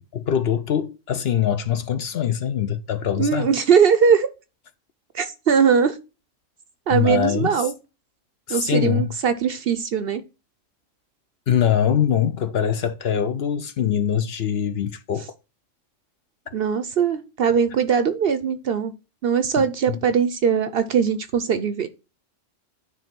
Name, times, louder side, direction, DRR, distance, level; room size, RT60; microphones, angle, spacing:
voice 1, 0.0-3.5 6.9-7.6 8.5-9.1 11.5-15.3 19.6-20.0, left 9 dB, 60° left, 0.8 m, -23 dB
voice 2, 3.2-4.3 5.1-6.0 6.9-7.7 8.5-10.2 16.5-18.9 19.2-21.9, right 7 dB, 55° right, 0.8 m, -20 dB
9.4 x 3.4 x 6.0 m
omnidirectional pair, 1.3 m